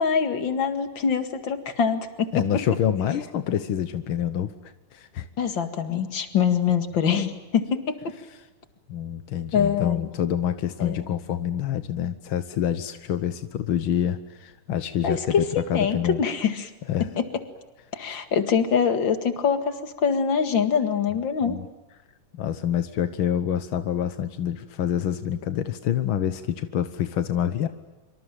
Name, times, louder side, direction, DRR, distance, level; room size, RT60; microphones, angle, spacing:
voice 1, 0.0-2.6 5.4-8.0 9.5-10.1 10.8-11.0 15.0-16.7 17.0-17.2 17.9-21.6, left 7 dB, 40° left, 8 dB, 2.3 m, -24 dB
voice 2, 2.3-5.3 8.9-16.2 16.9-17.1 21.4-21.6 22.3-27.7, left 10 dB, 65° left, 10 dB, 1.3 m, -27 dB
25.5 x 25.5 x 9.1 m, 1.1 s
omnidirectional pair, 3.7 m